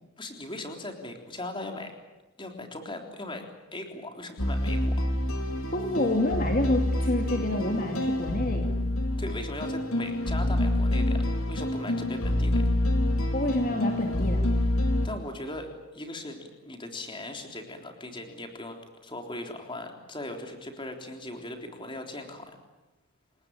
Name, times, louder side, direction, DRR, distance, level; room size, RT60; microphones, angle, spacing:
voice 1, 0.2-2.0 2.4-3.4 3.7-5.1 9.2-12.6 15.0-22.5, left 2 dB, 20° left, 4 dB, 3.6 m, -39 dB
sound 1, 4.4-15.1, left 1 dB, 70° left, 3.9 m, -27 dB
voice 2, 5.7-8.7 13.3-14.4, left 2 dB, 40° left, 3 dB, 2.5 m, -28 dB
29.0 x 19.0 x 8.9 m, 1.1 s
head